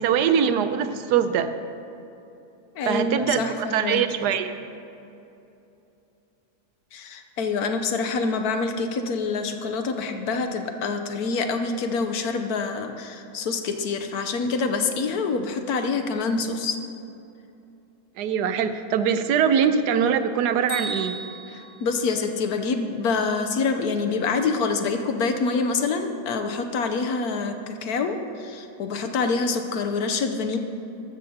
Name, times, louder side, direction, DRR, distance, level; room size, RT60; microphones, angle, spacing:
voice 1, 0.0-1.5 2.9-4.5 18.2-21.2, right 7 dB, 85° right, 10 dB, 1.2 m, -22 dB
voice 2, 2.8-4.3 6.9-16.8 21.5-30.6, left 4 dB, 75° left, 6 dB, 1.3 m, -26 dB
Bell, 20.7-22.7, right 2 dB, 50° left, 3.2 m, -36 dB
13.5 x 13.0 x 2.8 m, 2.8 s
omnidirectional pair, 1.7 m